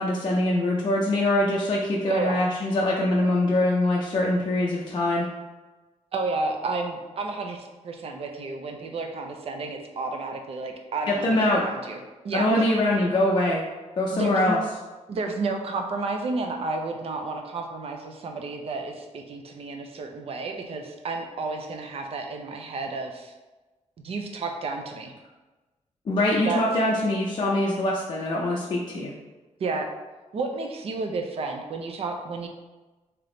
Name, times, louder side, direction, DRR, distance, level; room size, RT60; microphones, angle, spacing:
voice 1, 0.0-5.3 11.1-11.6 12.3-13.6 14.0-14.6 26.1-29.1, left 1 dB, 40° left, -4 dB, 0.4 m, -23 dB
voice 2, 2.1-2.4 6.1-12.5 14.1-14.6 15.1-23.3 24.0-25.1 26.5-26.6 29.6-29.9 30.3-32.5, right 3 dB, 55° right, 3 dB, 0.5 m, -31 dB
3.4 x 2.9 x 3.8 m, 1.2 s
wide cardioid pair, 180°, 12 cm